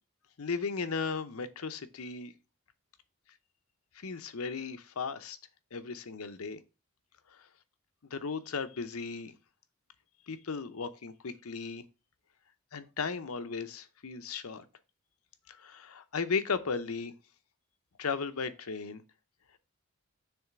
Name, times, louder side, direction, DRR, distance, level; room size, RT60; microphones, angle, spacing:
voice 1, 0.4-2.3 3.9-5.4 5.7-6.6 8.1-9.4 10.3-11.8 12.7-14.6 15.5-17.1 18.0-19.0, left 5 dB, 80° left, 0.7 m, -36 dB
7.0 x 3.2 x 5.9 m
head